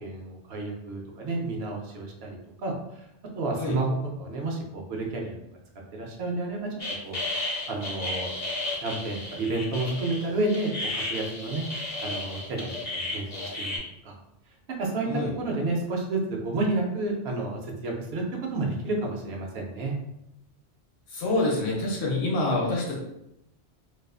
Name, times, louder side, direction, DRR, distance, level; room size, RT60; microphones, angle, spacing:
voice 1, 0.0-2.7 3.4-3.9 4.2-5.4 5.9-6.6 7.0-7.2 7.7-8.3 8.8-11.6 12.0-13.7 14.0-14.2 14.8-18.2 18.5-19.9, right 2 dB, 70° right, 0 dB, 0.8 m, -30 dB
sound 1, 6.8-13.8, left 2 dB, 25° left, 0.3 m, -33 dB
voice 2, 21.1-23.0, left 2 dB, 60° left, -2 dB, 0.8 m, -26 dB
2.4 x 2.3 x 2.3 m, 0.84 s
omnidirectional pair, 1.2 m